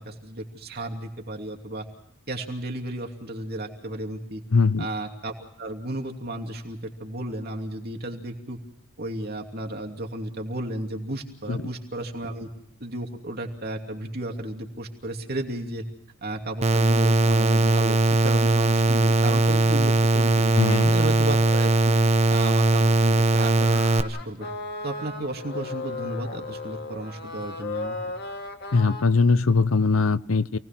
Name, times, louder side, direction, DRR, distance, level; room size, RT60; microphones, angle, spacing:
voice 1, 0.0-1.9 2.3-4.4 4.8-8.6 9.0-12.5 12.8-15.8 16.2-20.5 20.9-22.0 22.3-24.5 24.8-28.1, right 1 dB, 50° right, 3 dB, 2.8 m, -33 dB
voice 2, 4.5-4.9 11.5-11.6 20.5-20.9 28.7-30.6, left 4 dB, 80° left, 16 dB, 0.7 m, -21 dB
sound 1, 16.6-24.0, right 2 dB, 30° right, 1.0 m, -20 dB
sound 2, 23.6-29.1, left 3 dB, 50° left, 1.9 m, -35 dB
28.5 x 19.0 x 6.0 m, 0.80 s
head